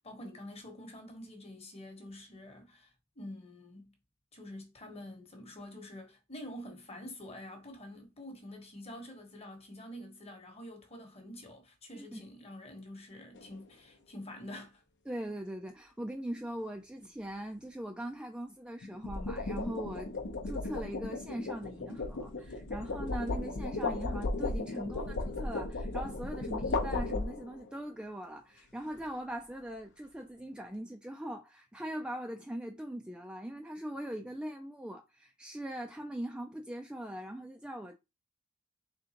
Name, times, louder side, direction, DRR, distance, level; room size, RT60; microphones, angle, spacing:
voice 1, 0.0-3.9 4.3-14.8, left 1 dB, 30° left, 1.1 m, -47 dB
voice 2, 11.9-12.2 15.1-20.1 20.4-38.0, right 1 dB, 5° right, 0.3 m, -41 dB
sound 1, 13.3-13.7 18.8-27.7, left 3 dB, 55° left, 0.7 m, -35 dB
3.8 x 3.5 x 2.8 m
head